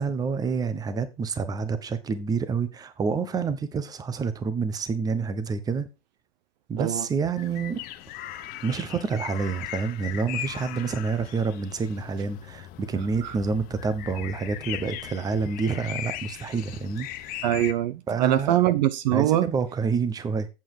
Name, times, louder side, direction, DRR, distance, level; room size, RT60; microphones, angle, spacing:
voice 1, 0.0-5.9 6.7-7.8 8.2-17.4 18.1-18.6 19.1-20.5, right 5 dB, 10° right, 0.9 m, -28 dB
sound 1, 7.4-17.7, left 13 dB, 30° left, 0.9 m, -38 dB
voice 2, 17.4-19.5, right 13 dB, 45° right, 0.7 m, -23 dB
8.3 x 7.0 x 4.9 m
hypercardioid pair, 135°, 30 cm